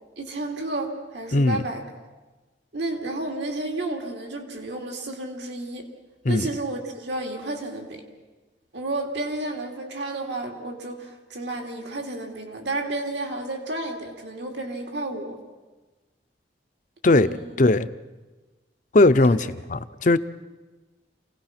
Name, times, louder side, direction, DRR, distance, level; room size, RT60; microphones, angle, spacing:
voice 1, 0.2-1.8 2.7-5.9 6.3-8.0 8.7-15.4 17.1-17.6 19.2-19.4, right 2 dB, 75° right, 2.7 m, -31 dB
voice 2, 1.3-1.6 6.2-6.5 17.0-17.3 17.6-17.9 18.9-20.2, left 2 dB, 45° left, 0.6 m, -18 dB
28.0 x 18.0 x 5.9 m
head